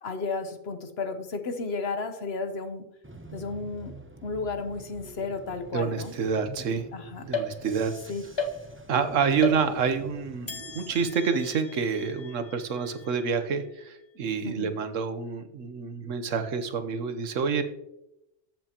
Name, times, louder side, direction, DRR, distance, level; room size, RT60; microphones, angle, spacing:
voice 1, 0.0-2.9 3.3-3.9 4.2-6.1 6.9-7.2 8.1-8.2 14.4-14.7, left 4 dB, 55° left, 8 dB, 1.2 m, -33 dB
Bus / Engine, 3.0-11.0, right 2 dB, 15° right, 0.6 m, -47 dB
voice 2, 5.7-6.9 7.2-7.9 8.9-17.6, right 6 dB, 85° right, 9 dB, 1.3 m, -28 dB
sound 1, 7.3-8.0 8.4-9.0 9.4-10.1 10.5-13.9, left 3 dB, 25° left, 0.8 m, -36 dB
13.5 x 7.8 x 2.9 m, 0.87 s
omnidirectional pair, 1.3 m